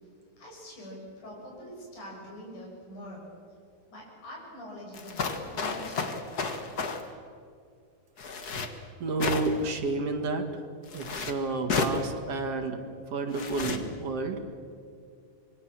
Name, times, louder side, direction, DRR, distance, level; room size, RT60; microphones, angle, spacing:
voice 1, 0.0-3.3 3.9-6.1, equal, 85° left, -3 dB, 8.2 m, -44 dB
sound 1, 4.9-7.0 8.2-8.7 9.2-9.7 10.9-11.3 11.7-12.0 13.3-13.8, left 4 dB, 40° left, 1.7 m, -31 dB
voice 2, 9.0-10.5 10.9-12.8 13.1-14.4, right 3 dB, 55° right, 4 dB, 3.0 m, -30 dB
26.0 x 22.5 x 7.6 m, 2.3 s
omnidirectional pair, 3.5 m